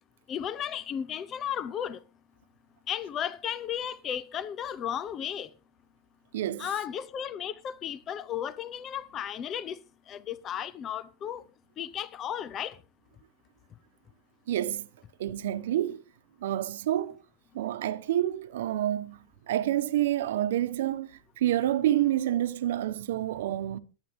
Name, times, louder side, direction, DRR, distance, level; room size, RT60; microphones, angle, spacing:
voice 1, 0.3-2.0 2.9-5.5 6.6-9.8 10.1-11.4 11.8-12.7, left 9 dB, 25° left, 0.6 m, -34 dB
voice 2, 6.3-6.7 14.5-14.9 15.2-16.0 16.4-17.2 17.5-21.1 21.4-23.8, right 12 dB, 80° right, 1.1 m, -28 dB
22.0 x 9.3 x 3.6 m
supercardioid pair, 165°, 0 cm